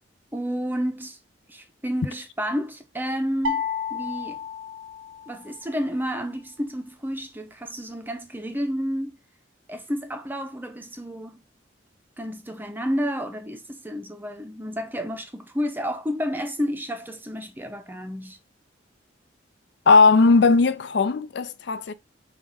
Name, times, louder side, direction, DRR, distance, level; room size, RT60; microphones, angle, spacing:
voice 1, 0.3-1.2 1.5-3.6 3.9-4.4 5.3-9.2 9.7-11.4 12.2-18.4, equal, 10° right, 0.6 m, -30 dB
sound 1, 3.4-5.6, left 5 dB, 85° right, 0.6 m, -31 dB
voice 2, 19.9-21.9, left 4 dB, 60° left, 0.4 m, -17 dB
5.5 x 2.4 x 3.5 m
head